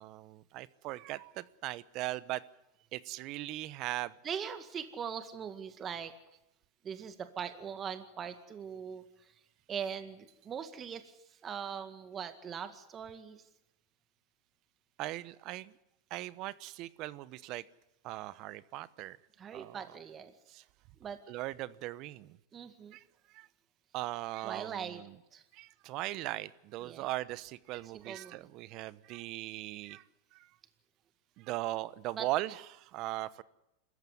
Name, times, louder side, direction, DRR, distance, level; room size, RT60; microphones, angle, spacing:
voice 1, 0.0-2.4 2.9-4.1 15.0-15.7 16.1-17.6 18.0-19.2 19.5-19.8 20.5-20.6 21.3-22.4 22.9-23.0 23.3-23.5 23.9-25.2 25.5-30.0 30.3-30.5 31.4-33.4, right 17 dB, 50° right, 17 dB, 1.0 m, -39 dB
voice 2, 4.2-6.1 6.8-9.3 9.7-13.4 19.4-20.3 21.0-21.2 22.5-23.0 24.4-25.0 25.3-25.4 26.8-27.1 27.9-28.4 32.1-32.3, right 7 dB, 30° right, 9 dB, 2.0 m, -41 dB
26.5 x 14.5 x 9.6 m, 0.89 s
hypercardioid pair, 115°, 0 cm